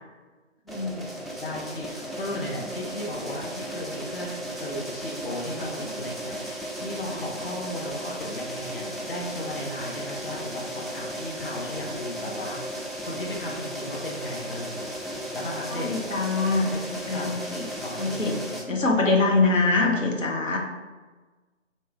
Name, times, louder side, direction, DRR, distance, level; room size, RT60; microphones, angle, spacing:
voice 1, 0.7-1.0 15.7-16.7 17.1-17.7 18.0-18.4 18.7-20.6, left 3 dB, 80° left, 1 dB, 0.9 m, -24 dB
sound 1, 0.7-18.6, equal, ahead, 0.3 m, -35 dB
voice 2, 1.4-12.8 13.0-14.9 15.3-15.9 16.7-17.3 17.8-18.7, left 1 dB, 45° left, -3 dB, 0.7 m, -36 dB
3.0 x 3.0 x 4.5 m, 1.3 s
figure-of-eight pair, 160°, 38 cm